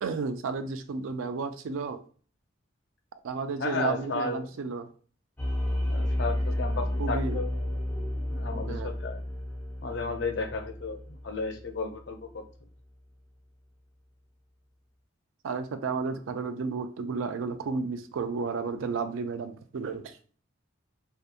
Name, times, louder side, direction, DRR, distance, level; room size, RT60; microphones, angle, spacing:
voice 1, 0.0-2.0 3.2-4.9 7.0-7.4 8.7-8.9 15.4-20.1, right 4 dB, 85° right, 9 dB, 0.4 m, -32 dB
voice 2, 3.6-4.5 5.9-7.5 8.3-9.2 9.8-12.4, left 3 dB, 60° left, 4 dB, 0.5 m, -33 dB
sound 1, 5.4-12.2, left 1 dB, 10° left, 0.4 m, -31 dB
2.8 x 2.2 x 2.4 m, 0.43 s
head